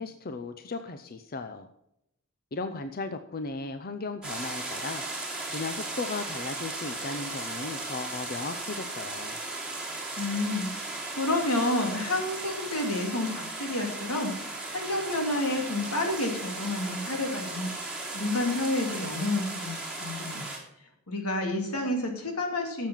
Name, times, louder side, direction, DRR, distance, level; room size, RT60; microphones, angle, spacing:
voice 1, 0.0-1.7 2.5-9.4, left 3 dB, 45° left, 9 dB, 0.6 m, -36 dB
sound 1, 4.2-20.6, right 2 dB, 5° right, 3.3 m, -36 dB
voice 2, 10.2-20.5 21.1-22.9, left 2 dB, 85° left, 2 dB, 2.7 m, -30 dB
12.0 x 7.4 x 5.6 m, 0.80 s
head